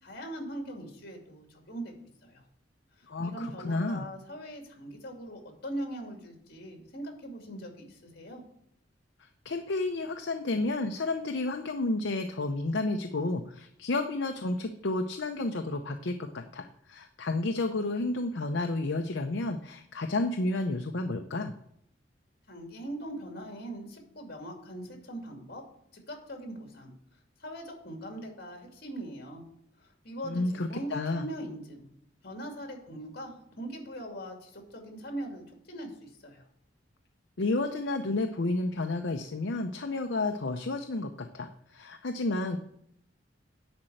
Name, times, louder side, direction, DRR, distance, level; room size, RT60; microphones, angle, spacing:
voice 1, 0.0-1.9 2.2-2.4 3.0-8.4 22.5-25.6 26.1-26.9 27.4-29.4 29.8-31.9 32.2-36.4, right 1 dB, 55° left, 2 dB, 2.4 m, -41 dB
voice 2, 3.1-4.1 9.4-21.5 30.2-31.3 37.4-42.6, left 2 dB, 70° left, 5 dB, 0.7 m, -31 dB
10.5 x 4.4 x 7.8 m, 0.72 s
head